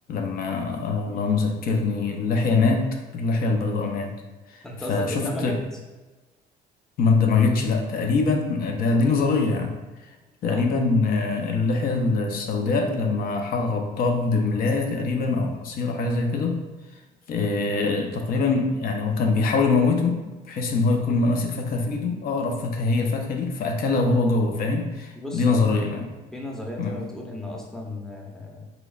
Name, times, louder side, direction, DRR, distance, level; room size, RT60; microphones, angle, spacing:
voice 1, 0.1-2.9 3.1-4.1 4.5-4.6 4.9-5.6 7.0-9.7 10.4-16.6 17.3-20.2 20.5-26.1 26.8-27.0, left 3 dB, 60° left, 3 dB, 0.6 m, -23 dB
voice 2, 4.6-5.6 10.5-10.7 25.2-25.9 26.3-28.7, left 1 dB, 5° left, -1 dB, 0.6 m, -35 dB
3.9 x 3.1 x 2.3 m, 1.2 s
cardioid pair, 110°, 17 cm